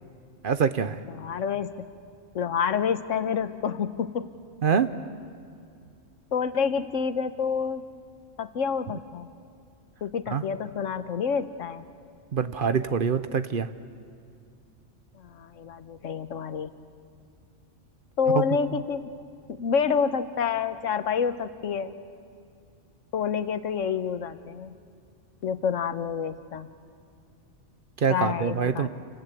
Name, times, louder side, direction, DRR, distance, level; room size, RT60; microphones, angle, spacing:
voice 1, 0.4-1.0 4.6-4.9 10.3-10.4 12.3-13.7 18.3-18.4 18.7-18.8 28.0-28.9, right 6 dB, 50° right, 11 dB, 0.8 m, -25 dB
voice 2, 1.2-1.7 2.3-4.3 6.3-7.8 8.4-9.3 10.0-11.8 15.1-16.7 18.2-19.0 19.5-21.9 23.1-24.7 25.4-26.7 28.1-28.9, left 6 dB, 85° left, 11 dB, 1.3 m, -28 dB
28.0 x 20.0 x 8.4 m, 2.4 s
omnidirectional pair, 1.3 m